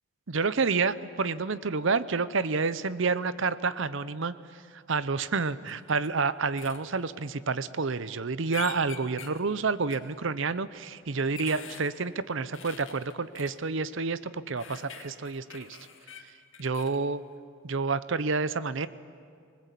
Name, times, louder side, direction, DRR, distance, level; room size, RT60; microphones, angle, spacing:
voice 1, 0.3-4.3 4.7-15.7 16.6-17.2 17.6-18.9, right 4 dB, 65° right, 15 dB, 0.7 m, -29 dB
sound 1, 5.7-6.1 6.6-6.8 8.5-9.4 9.9-10.0 10.9-11.9 12.5-13.5 14.6-17.0, left 6 dB, 65° left, 2.1 m, -44 dB
25.5 x 20.0 x 8.3 m, 2.2 s
head